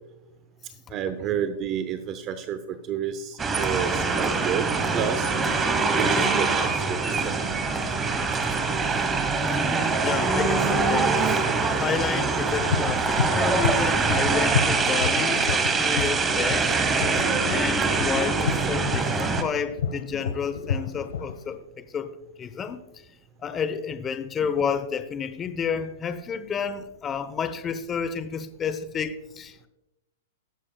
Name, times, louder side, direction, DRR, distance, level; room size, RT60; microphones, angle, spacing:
voice 1, 0.9-5.3 5.9-7.4, right 9 dB, 35° right, 0.7 m, -30 dB
sound 1, 3.4-19.4, right 4 dB, 20° right, 1.2 m, -24 dB
voice 2, 9.4-11.4 11.7-16.7 17.4-22.1 22.4-22.8 23.4-29.7, left 6 dB, 20° left, 0.8 m, -30 dB
sound 2, 12.6-21.6, left 6 dB, 80° left, 1.2 m, -30 dB
19.0 x 7.4 x 2.3 m
hypercardioid pair, 125°, 0 cm